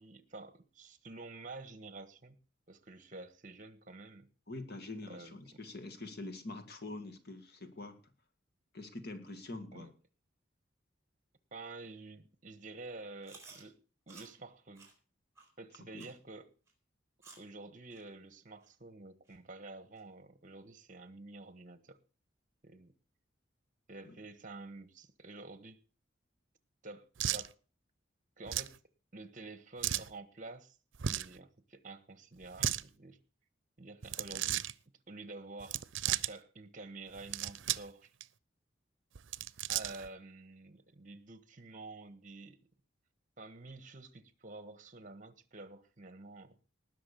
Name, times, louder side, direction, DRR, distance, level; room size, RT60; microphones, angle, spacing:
voice 1, 0.0-2.4 2.7-4.3 5.1-5.4 9.7-9.9 11.5-13.8 14.1-14.9 15.6-16.5 17.4-22.0 22.6-22.9 23.9-25.8 26.8-27.6 28.4-28.8 29.1-30.8 31.1-33.2 33.8-34.6 35.1-38.1 39.7-42.6 43.4-46.6, right 3 dB, 45° right, 1.4 m, -49 dB
voice 2, 4.5-8.0 8.7-9.9 15.9-16.1 24.0-24.2, left 2 dB, 55° left, 2.0 m, -45 dB
Chewing mastication, 13.2-13.6 14.1-14.3 14.7-14.9 15.3-15.5 16.0-16.2 16.7-16.8 17.2-17.5 17.9-18.0 18.6-18.7 19.3-19.4 19.9-20.0, right 4 dB, 15° right, 4.9 m, -54 dB
sound 1, 27.2-27.5 28.5-28.8 29.8-30.1 31.0-31.3 32.4-32.8 34.0-34.7 35.6-36.3 37.1-37.9 38.2-38.3 39.2-40.1, right 11 dB, 85° right, 0.6 m, -35 dB
19.5 x 6.4 x 6.9 m
head